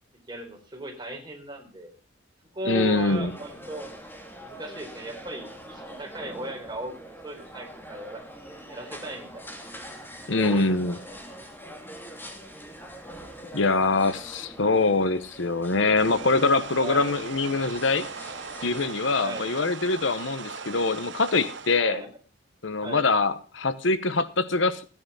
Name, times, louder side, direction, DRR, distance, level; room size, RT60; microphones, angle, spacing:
voice 1, 0.3-1.9 2.5-3.9 4.4-6.9 7.2-8.2 8.7-9.5 10.3-11.2 12.2-12.4 13.9-14.2 16.8-17.2 19.2-19.6 21.8-22.1 22.8-23.1, right 1 dB, 25° right, 4.1 m, -37 dB
voice 2, 2.6-3.3 10.3-11.0 13.5-18.1 18.6-22.0 22.6-24.9, left 3 dB, 70° left, 1.0 m, -24 dB
sound 1, 2.8-18.9, equal, 10° left, 2.7 m, -44 dB
sound 2, 16.0-21.8, right 5 dB, 65° right, 1.0 m, -39 dB
16.0 x 9.7 x 5.5 m
head